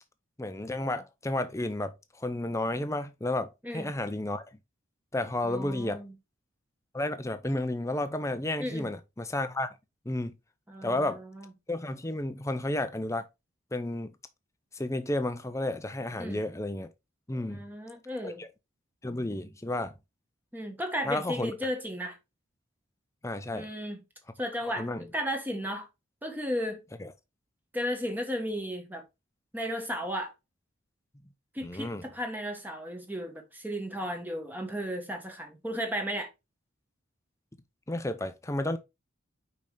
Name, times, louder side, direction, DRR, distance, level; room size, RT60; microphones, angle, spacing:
voice 1, 0.4-4.4 5.1-6.0 6.9-9.7 10.1-10.4 10.8-11.2 11.7-13.3 13.7-14.1 14.7-16.9 17.3-17.6 18.2-18.5 19.0-19.9 21.0-21.5 23.2-23.7 24.8-25.0 27.0-27.1 31.6-32.0 37.9-38.8, left 1 dB, 15° left, 0.6 m, -32 dB
voice 2, 5.4-6.1 8.6-8.9 10.7-11.5 16.2-16.4 17.5-18.4 20.5-22.2 23.5-24.0 24.4-25.9 26.2-26.8 27.7-29.0 29.5-30.3 31.5-36.3, equal, 10° right, 1.2 m, -34 dB
5.3 x 5.3 x 3.3 m
head